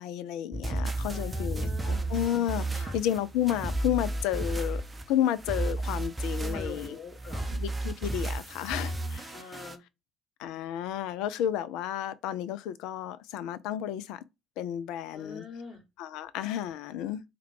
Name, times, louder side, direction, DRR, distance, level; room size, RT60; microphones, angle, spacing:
voice 1, 0.0-4.8 5.1-7.0 7.5-9.4 10.4-14.2 14.6-15.4 16.0-17.2, left 11 dB, 60° left, 0.3 m, -32 dB
sound 1, 0.5-9.8, right 2 dB, 20° right, 0.6 m, -33 dB
voice 2, 1.1-2.1 2.8-3.0 6.4-7.6 9.3-9.8 15.1-15.8, left 4 dB, 40° left, 2.3 m, -44 dB
3.6 x 2.2 x 4.4 m
figure-of-eight pair, 55°, 0 cm